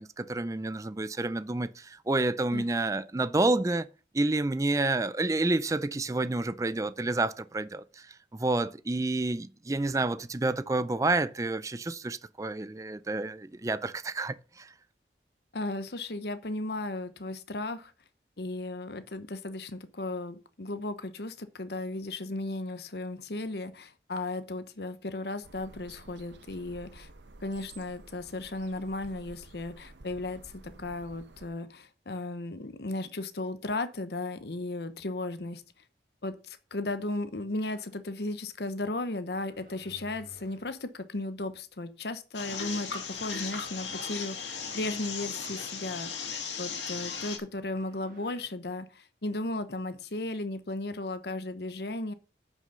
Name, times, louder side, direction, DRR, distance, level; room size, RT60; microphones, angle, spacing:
voice 1, 0.0-3.9 4.1-8.1 8.3-14.7, right 2 dB, 20° right, 0.4 m, -29 dB
voice 2, 15.5-17.9 18.4-27.1 27.4-35.6 36.2-46.1 46.6-52.1, left 2 dB, 70° left, 0.9 m, -35 dB
sound 1, 25.4-31.5, right 2 dB, 85° right, 1.0 m, -52 dB
sound 2, 37.6-38.0 39.3-40.9 42.8-44.0 46.7-48.5, right 2 dB, 50° right, 1.8 m, -56 dB
sound 3, 42.3-47.4, left 6 dB, 90° left, 2.5 m, -37 dB
9.1 x 6.2 x 5.5 m
head